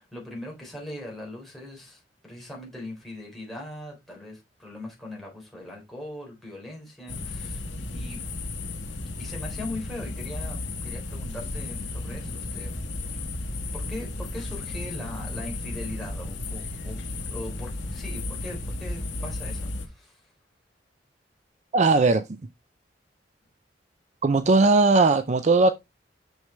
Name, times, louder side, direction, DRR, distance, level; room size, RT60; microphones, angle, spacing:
voice 1, 0.0-8.2 9.2-12.7 13.7-17.0 17.3-20.3, left 1 dB, ahead, 3.8 m, -40 dB
sound 1, 7.1-19.9, left 2 dB, 80° left, 1.6 m, -34 dB
voice 2, 21.7-22.2 24.2-25.7, right 3 dB, 40° right, 0.5 m, -18 dB
6.4 x 6.3 x 3.2 m
head